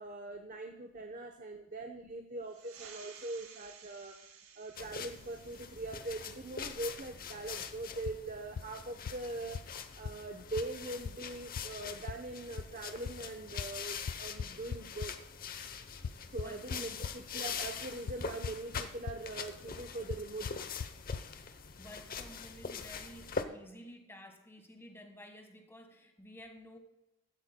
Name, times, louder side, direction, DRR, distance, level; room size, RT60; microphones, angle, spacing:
voice 1, 0.0-4.2 4.6-9.6 10.0-15.1 16.3-20.7, right 2 dB, 40° right, 4 dB, 0.8 m, -42 dB
sound 1, 2.4-7.5, right 7 dB, 85° right, 1.9 m, -56 dB
sound 2, 4.7-23.4, left 6 dB, 45° left, 0.8 m, -43 dB
sound 3, 8.1-8.2 8.6-8.7 9.1-9.2 9.5-9.6 10.1-10.2 10.6-10.7 11.1-11.2 11.6-11.7 12.1-12.2 12.6-12.7 13.1-13.2 13.6-13.7 14.1-15.1 16.0-17.1 18.1-18.2 18.4-18.8 19.1-19.2 20.1-20.2 20.5-20.6 20.8-20.9 21.1-21.2, left 6 dB, 80° left, 0.4 m, -37 dB
voice 2, 16.0-17.1 21.5-26.8, equal, 10° left, 5 dB, 1.5 m, -53 dB
16.0 x 12.5 x 2.2 m, 0.91 s
head